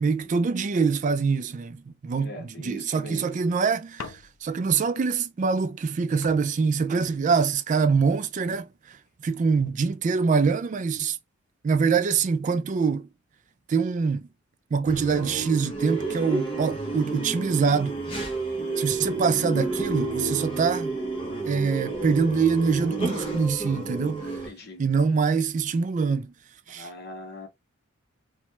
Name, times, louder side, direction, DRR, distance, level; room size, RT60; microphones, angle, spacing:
voice 1, 0.0-9.0 9.2-11.2 11.6-13.1 13.7-14.3 14.7-18.0 18.8-21.0 21.4-24.3 24.8-26.3 26.7-26.9, right 5 dB, 40° right, 0.3 m, -24 dB
voice 2, 2.2-3.4 24.4-24.8 26.7-27.5, left 1 dB, 55° left, 0.9 m, -41 dB
sound 1, 4.0-4.7 5.8-5.9 6.2-7.7 8.5-8.9, left 4 dB, 75° left, 0.5 m, -44 dB
sound 2, 14.8-24.5, right 3 dB, 25° left, 0.9 m, -30 dB
3.0 x 2.3 x 2.9 m
head